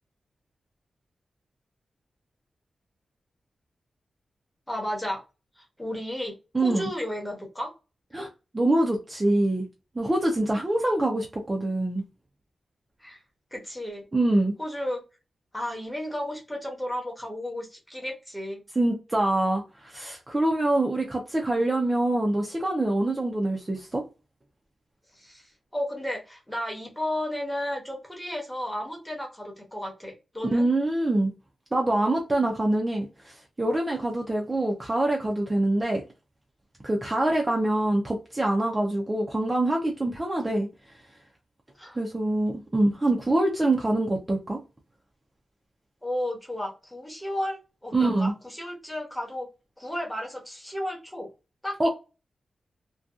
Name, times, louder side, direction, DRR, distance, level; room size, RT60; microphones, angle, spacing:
voice 1, 4.7-5.2 5.6-6.3 6.6-7.7 13.0-13.2 13.5-14.0 14.6-15.0 15.5-18.6 25.2-25.4 25.7-30.7 41.8-42.0 46.0-49.5 49.8-51.3 51.6-51.9, left 1 dB, 5° left, 0.8 m, -33 dB
voice 2, 6.5-6.9 8.1-8.3 8.5-9.7 10.0-12.0 14.1-14.5 18.8-24.0 30.5-31.3 31.7-36.0 36.8-40.7 42.0-44.6 47.9-48.3 51.8-51.9, right 1 dB, 15° right, 0.4 m, -25 dB
2.6 x 2.2 x 2.3 m
wide cardioid pair, 175°, 0 cm